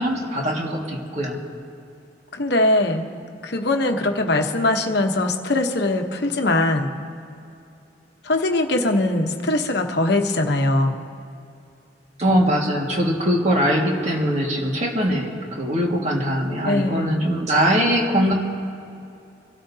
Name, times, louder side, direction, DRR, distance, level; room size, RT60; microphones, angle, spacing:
voice 1, 0.0-1.4 12.2-18.3, equal, 35° right, -1 dB, 1.9 m, -21 dB
voice 2, 2.3-3.1 3.4-7.0 8.2-11.0 16.6-17.2, left 2 dB, 60° left, 4 dB, 1.1 m, -21 dB
26.5 x 13.0 x 2.8 m, 2.6 s
head